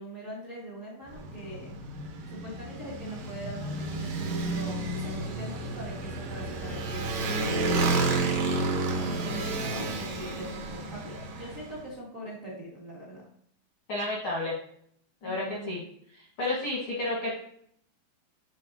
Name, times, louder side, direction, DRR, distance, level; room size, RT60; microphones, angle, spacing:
voice 1, 0.0-1.7 2.2-7.2 9.0-13.3 15.2-15.8, right 1 dB, 85° right, -5 dB, 0.7 m, -42 dB
Motorcycle, 1.1-11.8, right 3 dB, 70° right, 2.1 m, -31 dB
voice 2, 7.7-8.3 13.9-14.6 15.2-15.8 16.1-17.3, left 2 dB, 80° left, -5 dB, 1.1 m, -32 dB
10.5 x 4.1 x 2.7 m, 0.66 s
omnidirectional pair, 4.9 m